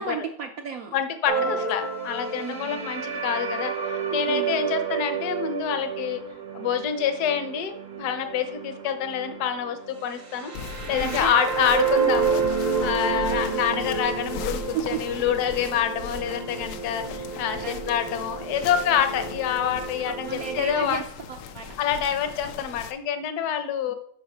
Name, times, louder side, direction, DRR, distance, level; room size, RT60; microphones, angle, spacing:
voice 1, 0.0-1.0 1.3-1.7 2.4-2.8 4.3-4.6 10.9-11.3 13.1-13.4 14.7-15.3 17.6-17.8 20.3-21.8, right 7 dB, 75° right, 5 dB, 0.8 m, -34 dB
voice 2, 0.9-3.7 4.1-6.2 6.5-10.5 10.9-12.4 12.8-21.0 21.8-23.9, left 8 dB, 60° left, 8 dB, 1.2 m, -27 dB
sound 1, 1.3-20.8, right 5 dB, 90° right, 2.3 m, -30 dB
sound 2, 10.5-22.9, left 5 dB, 85° left, 1.6 m, -38 dB
7.3 x 5.7 x 5.0 m, 0.66 s
omnidirectional pair, 2.2 m